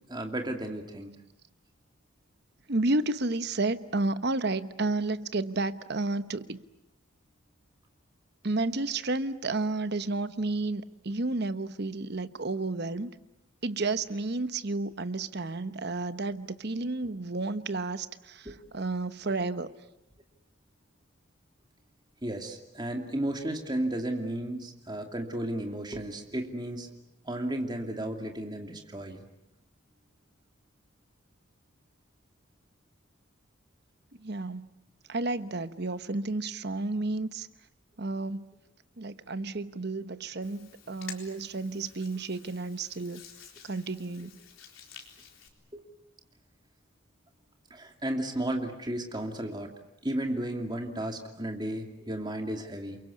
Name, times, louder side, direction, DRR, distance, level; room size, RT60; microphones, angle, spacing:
voice 1, 0.1-1.1 18.5-18.6 22.2-26.9 27.3-29.2 45.7-45.8 47.7-49.7 50.0-53.0, right 1 dB, 20° right, 3 dB, 2.6 m, -33 dB
voice 2, 2.7-6.6 8.4-13.1 13.6-19.7 34.2-34.7 35.1-37.5 38.0-38.5 39.0-43.2 43.6-44.3, right 2 dB, 55° right, 13 dB, 1.0 m, -31 dB
Hands, 40.4-45.5, left 7 dB, 85° left, 4.0 m, -50 dB
28.5 x 23.0 x 8.5 m, 0.85 s
head